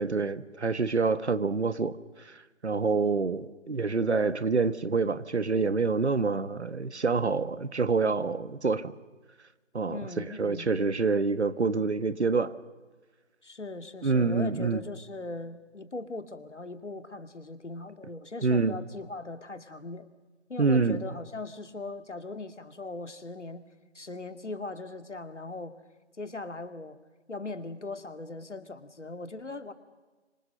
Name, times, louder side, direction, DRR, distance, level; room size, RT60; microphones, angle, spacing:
voice 1, 0.0-2.0 2.2-2.4 2.6-8.9 9.7-12.5 14.0-14.8 18.4-18.8 20.6-21.0, right 4 dB, 65° right, 1.4 m, -27 dB
voice 2, 9.9-10.7 13.4-20.1 20.5-23.6 23.9-25.8 26.2-27.0 27.3-29.7, left 3 dB, 75° left, 2.2 m, -39 dB
29.5 x 25.5 x 6.6 m
figure-of-eight pair, 160°, 36 cm